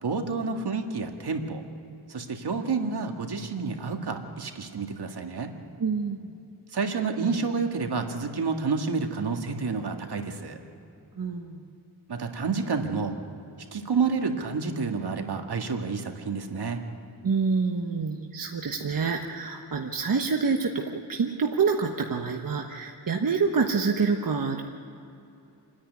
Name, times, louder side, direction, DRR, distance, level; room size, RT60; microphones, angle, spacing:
voice 1, 0.0-1.6 2.1-5.5 6.7-10.6 12.1-13.2 13.7-16.8, right 4 dB, 70° right, 4 dB, 1.9 m, -29 dB
voice 2, 5.8-6.3 11.2-11.6 17.2-24.6, right 5 dB, 55° right, 2 dB, 1.2 m, -27 dB
28.0 x 10.0 x 9.6 m, 2.8 s
wide cardioid pair, 85°, 41 cm